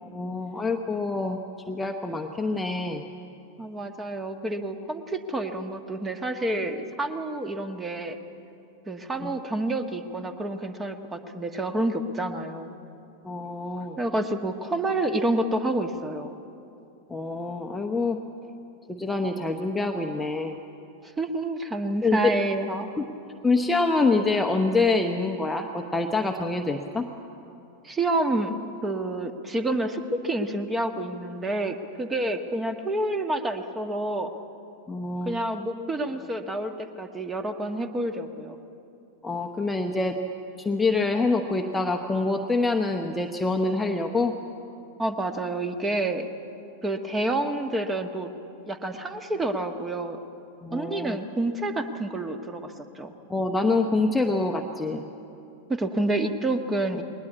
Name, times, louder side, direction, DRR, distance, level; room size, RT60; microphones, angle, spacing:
voice 1, 0.0-1.4 1.7-3.0 9.2-9.3 13.2-14.0 17.1-18.2 18.9-20.6 22.0-22.3 23.0-23.1 23.4-27.1 34.9-35.3 39.2-40.2 40.6-44.3 50.6-51.2 53.3-55.0, left 3 dB, 10° left, 4 dB, 1.0 m, -26 dB
voice 2, 3.6-8.2 8.9-12.7 14.0-16.3 21.0-22.9 27.8-28.6 28.8-34.3 35.2-38.6 45.0-46.3 46.8-48.3 48.6-50.2 50.7-53.1 55.7-57.0, right 2 dB, 15° right, 8 dB, 1.5 m, -28 dB
20.5 x 19.5 x 8.5 m, 2.7 s
figure-of-eight pair, 90°, 0 cm